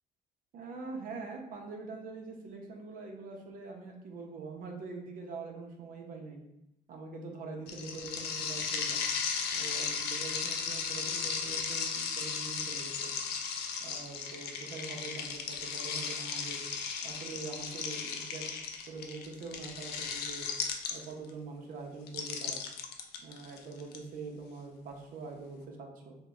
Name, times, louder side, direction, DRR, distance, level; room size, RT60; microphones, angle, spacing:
voice 1, 0.5-6.4 6.9-9.0 9.5-13.1 13.8-16.6 17.0-18.5 18.9-20.5 20.9-22.6 23.2-26.2, right 3 dB, 55° right, 2 dB, 0.6 m, -44 dB
sound 1, 7.7-21.3 22.1-24.0, left 6 dB, 70° left, 0.4 m, -36 dB
2.8 x 2.1 x 3.6 m, 0.85 s
cardioid pair, 110°, 17 cm